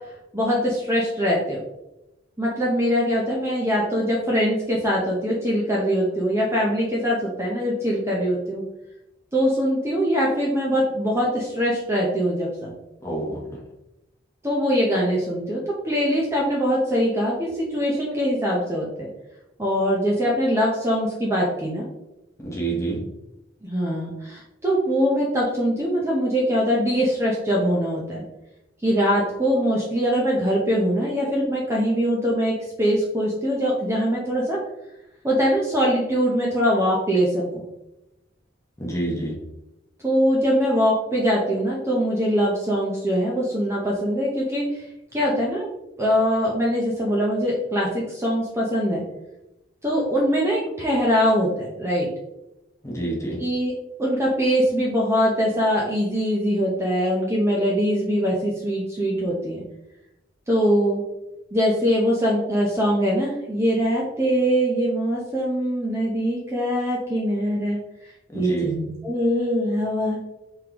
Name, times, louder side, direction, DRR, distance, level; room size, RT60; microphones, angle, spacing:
voice 1, 0.3-1.6 2.4-8.6 9.3-12.7 14.4-15.6 15.8-19.1 19.6-21.8 23.6-28.2 28.8-34.6 35.2-37.6 40.0-44.8 45.1-45.7 46.0-49.0 49.8-52.1 53.4-53.7 54.0-59.6 60.5-61.0 61.5-67.8 68.3-70.2, equal, 15° right, -3 dB, 0.6 m, -22 dB
voice 2, 13.0-13.6 22.4-23.0 38.8-39.4 52.8-53.4 68.3-68.7, right 2 dB, 15° left, -3 dB, 1.0 m, -28 dB
3.7 x 3.2 x 2.9 m, 0.92 s
head